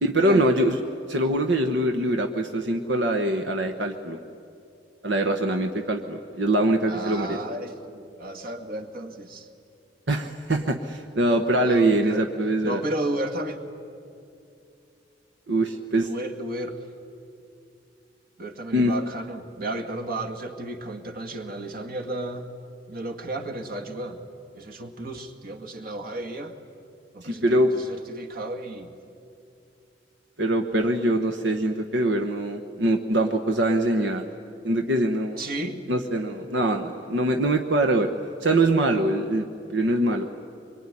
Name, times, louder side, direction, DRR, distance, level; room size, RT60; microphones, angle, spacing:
voice 1, 0.0-0.8 1.1-4.2 5.0-7.4 10.1-12.8 15.5-16.1 18.7-18.9 27.2-27.7 30.4-34.2 34.6-35.4 35.9-38.1 38.4-40.3, right 1 dB, 80° right, 5 dB, 1.2 m, -23 dB
voice 2, 6.9-9.5 11.6-12.3 12.6-13.6 16.0-16.8 18.4-22.5 22.9-24.2 24.5-26.5 27.1-28.9 35.4-35.8, right 1 dB, 55° right, 5 dB, 2.0 m, -33 dB
24.5 x 23.0 x 9.9 m, 2.6 s
head